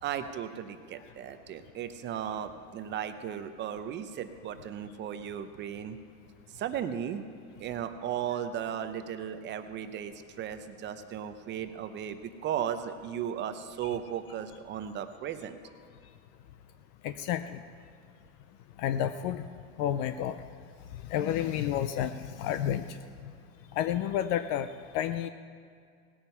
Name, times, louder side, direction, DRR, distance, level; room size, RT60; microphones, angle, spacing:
voice 1, 0.0-6.0 6.5-7.2 7.6-15.6, right 9 dB, 25° right, 9 dB, 0.6 m, -36 dB
voice 2, 17.0-17.6 18.8-19.5 19.8-20.4 21.1-23.0 23.7-24.7 24.9-25.3, left 10 dB, 35° left, 12 dB, 0.4 m, -30 dB
17.5 x 8.9 x 5.5 m, 2.3 s
supercardioid pair, 130°, 42 cm